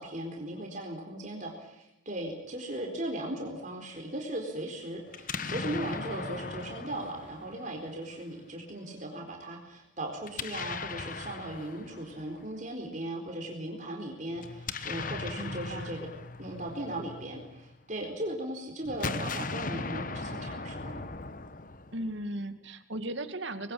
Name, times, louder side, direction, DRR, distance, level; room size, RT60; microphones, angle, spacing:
voice 1, 0.0-16.1 16.4-21.1, right 1 dB, 40° right, 1 dB, 4.2 m, -38 dB
Explosion, 5.1-8.2 10.2-12.5 14.4-17.8 18.8-22.2, left 4 dB, 40° left, 1.3 m, -38 dB
voice 2, 15.4-16.0 21.9-23.7, right 1 dB, 70° right, 8 dB, 2.4 m, -37 dB
27.5 x 21.5 x 8.8 m, 0.89 s
head